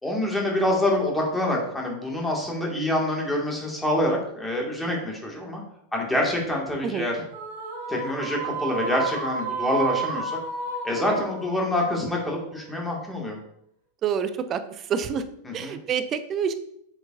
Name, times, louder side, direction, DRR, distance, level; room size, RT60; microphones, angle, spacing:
voice 1, 0.0-5.6 5.9-7.1 7.9-10.4 10.8-13.4 15.4-15.8, left 1 dB, 5° left, -1 dB, 2.1 m, -26 dB
sound 1, 7.3-12.7, right 4 dB, 55° right, 1.6 m, -32 dB
voice 2, 14.0-15.2 15.5-16.5, right 7 dB, 30° right, 12 dB, 0.6 m, -27 dB
7.7 x 7.0 x 2.6 m, 0.73 s
figure-of-eight pair, 90°, 0 cm